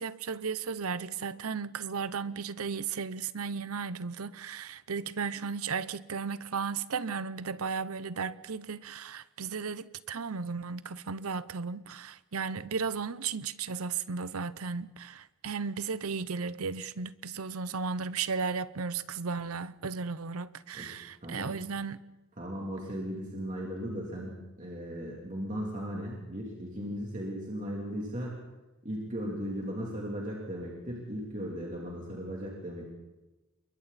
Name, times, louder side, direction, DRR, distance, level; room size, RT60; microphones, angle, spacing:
voice 1, 0.0-22.0, right 5 dB, 90° right, 0.8 m, -35 dB
voice 2, 21.2-21.5 22.4-28.3 28.8-32.9, equal, 35° right, 3.1 m, -37 dB
28.0 x 23.0 x 4.2 m
head